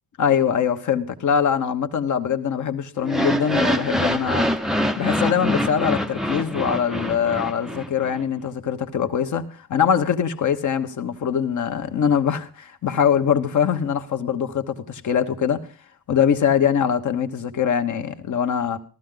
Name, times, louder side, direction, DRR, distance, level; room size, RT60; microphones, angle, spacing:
voice 1, 0.2-4.5 5.0-9.4 9.7-15.6 16.1-18.8, left 8 dB, 45° left, 1.2 m, -22 dB
sound 1, 3.0-8.2, equal, ahead, 0.6 m, -25 dB
15.0 x 13.0 x 3.8 m
cardioid pair, 130°, 40 cm